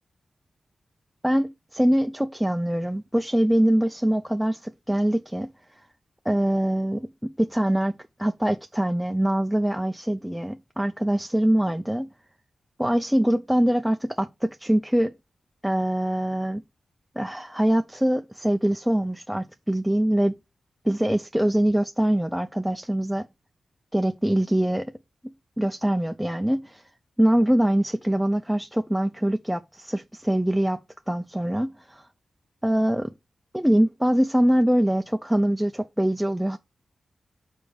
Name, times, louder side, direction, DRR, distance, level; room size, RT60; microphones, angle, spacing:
voice 1, 1.2-5.5 6.3-12.1 12.8-15.1 15.6-16.6 17.2-20.3 20.9-23.3 23.9-24.9 25.6-26.8 27.2-30.8 31.1-32.1 32.6-33.1 33.5-36.6, right 1 dB, 5° right, 0.3 m, -23 dB
5.2 x 4.6 x 6.2 m
wide cardioid pair, 115°, 0 cm